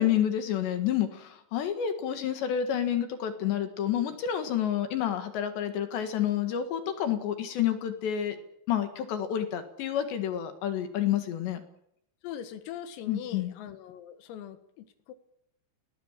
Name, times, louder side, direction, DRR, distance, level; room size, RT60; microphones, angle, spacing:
voice 1, 0.0-8.4 8.7-11.6 13.1-13.5, left 10 dB, 65° left, 8 dB, 3.7 m, -29 dB
voice 2, 12.2-15.1, left 9 dB, 80° left, 10 dB, 4.3 m, -42 dB
29.5 x 20.0 x 7.5 m, 0.75 s
omnidirectional pair, 6.0 m